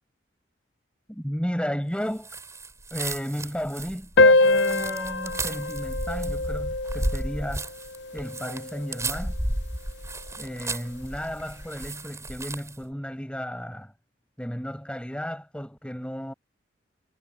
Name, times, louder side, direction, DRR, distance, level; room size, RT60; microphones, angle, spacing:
voice 1, 1.1-2.3 2.9-7.7 8.1-9.4 10.4-13.9 14.4-16.3, equal, 5° left, 6.5 m, -33 dB
sound 1, 2.2-12.8, right 1 dB, 15° right, 7.6 m, -34 dB
sound 2, 4.2-9.1, left 2 dB, 65° left, 0.7 m, -24 dB
head